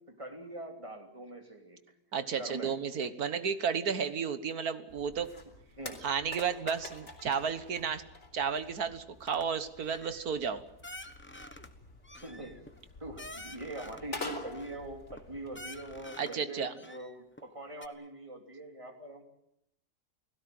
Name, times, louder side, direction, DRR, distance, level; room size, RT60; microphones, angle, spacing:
voice 1, 0.1-1.8 2.4-2.7 5.8-6.0 12.2-12.6 13.0-19.2, right 1 dB, 20° right, 4 dB, 3.2 m, -43 dB
voice 2, 2.1-5.3 6.0-8.0 8.3-10.6 16.2-16.7, right 6 dB, 75° right, 11 dB, 1.8 m, -32 dB
sound 1, 4.9-16.0, left 2 dB, 50° left, 4.2 m, -47 dB
sound 2, 9.2-9.5 9.8-10.2 10.8-11.7 12.0-14.1 14.5-15.2 15.5-16.4 16.8-17.5 17.8-17.9, left 1 dB, 10° left, 1.1 m, -48 dB
29.5 x 16.5 x 7.8 m, 0.79 s
omnidirectional pair, 1.6 m